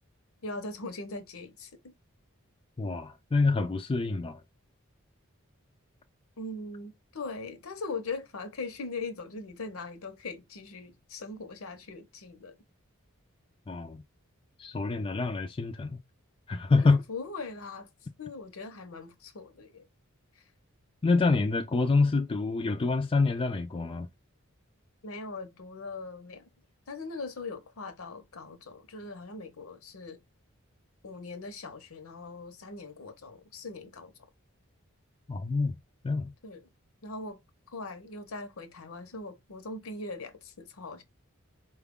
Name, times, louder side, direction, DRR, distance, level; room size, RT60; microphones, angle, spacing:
voice 1, 0.4-1.9 6.4-12.6 16.8-17.9 18.2-19.8 20.3-20.4 25.0-26.5 26.9-30.2 31.0-34.1 36.4-36.7 37.0-37.4 37.7-41.0, left 3 dB, 70° left, 0.8 m, -40 dB
voice 2, 2.8-4.4 13.7-14.0 14.6-16.0 16.5-17.0 21.0-24.1 35.3-35.8 36.0-36.3, left 3 dB, 25° left, 0.4 m, -26 dB
4.4 x 2.3 x 3.6 m
head